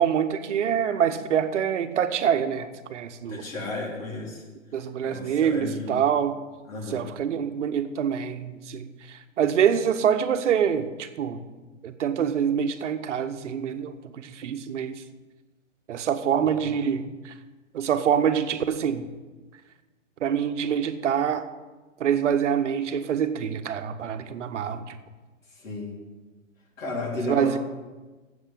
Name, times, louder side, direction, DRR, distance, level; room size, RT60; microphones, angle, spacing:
voice 1, 0.0-3.4 4.7-6.4 6.9-11.4 11.8-15.0 15.9-17.3 17.7-19.1 20.2-21.4 22.0-25.0 27.3-27.6, right 8 dB, 65° right, 9 dB, 1.0 m, -25 dB
voice 2, 3.3-4.4 5.0-6.0 6.7-7.1 16.5-16.7 25.6-26.0 26.8-27.6, left 2 dB, 85° left, -2 dB, 3.6 m, -33 dB
7.9 x 7.8 x 7.4 m, 1.2 s
hypercardioid pair, 165°, 39 cm